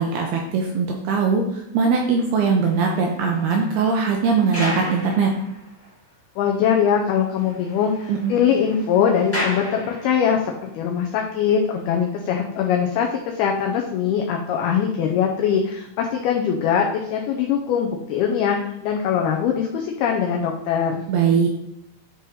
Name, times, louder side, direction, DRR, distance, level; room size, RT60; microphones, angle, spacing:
voice 1, 0.0-5.3 8.1-8.3 21.1-21.5, right 5 dB, 80° right, 1 dB, 2.3 m, -21 dB
sound 1, 2.4-6.1 6.4-6.5 6.9-7.0 7.2-10.5 11.2-11.4, left 1 dB, 5° left, 1.3 m, -34 dB
voice 2, 6.4-13.1 13.3-21.0, left 7 dB, 90° left, 1 dB, 2.2 m, -22 dB
9.7 x 4.2 x 3.8 m, 0.79 s
omnidirectional pair, 5.3 m